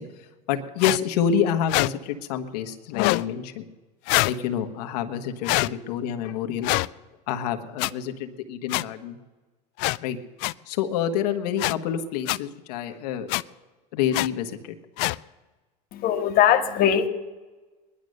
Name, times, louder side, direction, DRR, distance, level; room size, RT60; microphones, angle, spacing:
voice 1, 0.0-3.6 4.2-6.7 7.3-9.2 10.0-10.2 10.7-13.4 13.9-14.7, left 8 dB, 90° left, 6 dB, 1.3 m, -28 dB
sound 1, 0.8-1.0 1.7-1.9 2.9-3.2 4.1-4.4 5.4-5.7 6.6-6.9 7.8-7.9 8.7-8.8 9.8-10.0 10.4-10.5 11.6-11.7 12.3-12.4 13.3-13.4 14.1-14.3 15.0-15.2, left 24 dB, 65° left, 0.4 m, -23 dB
voice 2, 15.9-17.1, left 9 dB, 50° left, 7 dB, 1.4 m, -20 dB
19.5 x 11.5 x 6.5 m, 1.2 s
supercardioid pair, 115°, 20 cm